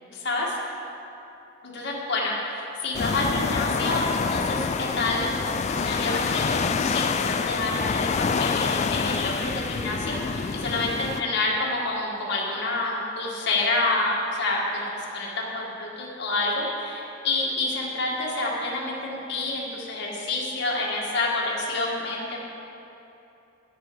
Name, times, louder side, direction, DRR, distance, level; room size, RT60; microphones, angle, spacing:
voice 1, 0.1-0.6 1.6-5.4 5.7-22.4, left 2 dB, 55° left, -3 dB, 1.9 m, -28 dB
sound 1, 2.9-11.2, left 5 dB, 35° left, 0.3 m, -26 dB
10.5 x 9.3 x 4.8 m, 2.9 s
head